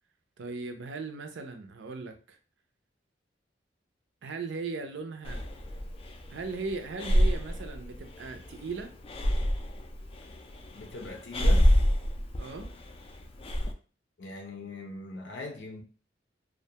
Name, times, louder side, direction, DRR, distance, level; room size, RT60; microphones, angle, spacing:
voice 1, 0.4-2.4 4.2-5.4 6.3-8.9 12.4-12.7, right 4 dB, 75° right, 0.5 m, -38 dB
Breathing, 5.2-13.7, equal, 30° left, 0.3 m, -28 dB
voice 2, 10.7-11.7 14.2-15.8, left 2 dB, 75° left, 0.6 m, -40 dB
2.4 x 2.1 x 2.8 m
head